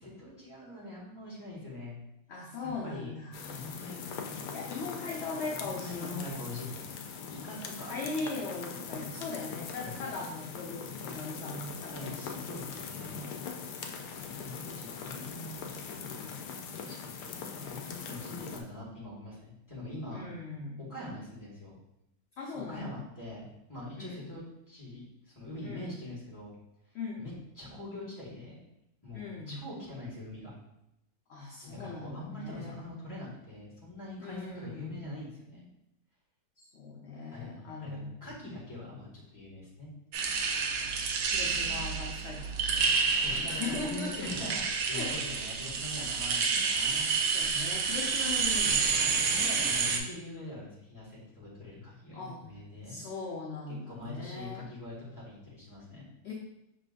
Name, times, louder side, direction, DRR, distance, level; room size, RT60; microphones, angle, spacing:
voice 1, 0.0-1.9 2.8-3.1 3.5-4.5 5.6-6.8 7.3-7.9 9.7-10.0 11.9-13.1 14.0-16.1 16.8-20.3 20.8-21.8 22.7-26.5 27.2-28.6 29.0-30.5 31.6-35.7 37.3-39.9 43.2-47.2 49.3-53.0 53.7-56.1, left 2 dB, 10° left, -7 dB, 1.6 m, -43 dB
voice 2, 2.3-3.6 4.5-6.5 7.9-12.4 13.0-13.3 20.1-20.8 22.4-23.0 24.0-24.2 25.6-25.9 26.9-27.2 29.1-29.6 31.3-32.8 34.2-35.1 36.6-38.1 41.2-44.3 44.9-45.1 46.7-49.7 52.1-52.4 52.8-54.7 56.2-56.3, left 3 dB, 60° left, -3 dB, 0.7 m, -40 dB
sound 1, 3.3-18.6, left 6 dB, 85° left, 1.2 m, -41 dB
sound 2, 40.1-50.0, right 5 dB, 70° right, 1.0 m, -29 dB
5.4 x 3.7 x 2.5 m, 0.85 s
omnidirectional pair, 1.7 m